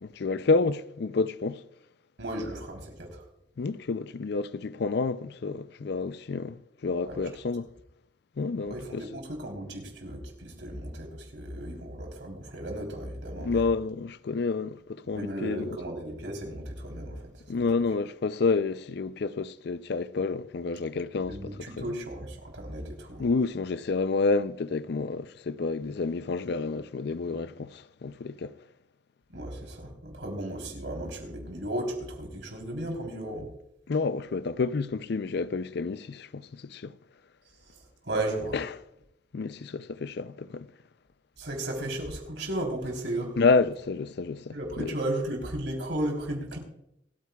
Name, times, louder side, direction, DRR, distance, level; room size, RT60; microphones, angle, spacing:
voice 1, 0.0-1.6 3.6-7.7 8.4-9.0 13.4-15.8 17.5-21.5 21.8-21.9 23.2-28.5 33.9-36.9 38.5-38.6 39.3-40.7 43.4-44.9, left 4 dB, 65° left, 0.5 m, -29 dB
voice 2, 2.2-3.2 7.0-7.2 8.7-13.6 15.1-17.4 21.3-23.3 29.3-33.5 38.0-38.6 41.4-43.4 44.5-46.6, right 1 dB, 85° right, 3.6 m, -35 dB
27.5 x 9.2 x 2.3 m
head